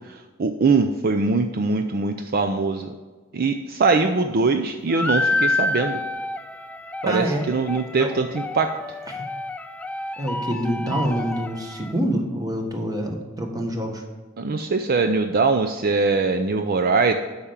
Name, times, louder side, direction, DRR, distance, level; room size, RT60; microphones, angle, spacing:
voice 1, 0.0-2.9 3.3-6.0 7.0-8.7 14.4-17.1, right 4 dB, 50° right, 7 dB, 0.5 m, -22 dB
sound 1, 4.9-12.0, left 2 dB, 5° left, 0.3 m, -28 dB
voice 2, 7.0-7.4 8.0-8.1 9.1-9.2 10.2-14.0, equal, 20° right, 2 dB, 1.4 m, -26 dB
8.6 x 5.7 x 7.3 m, 1.3 s
head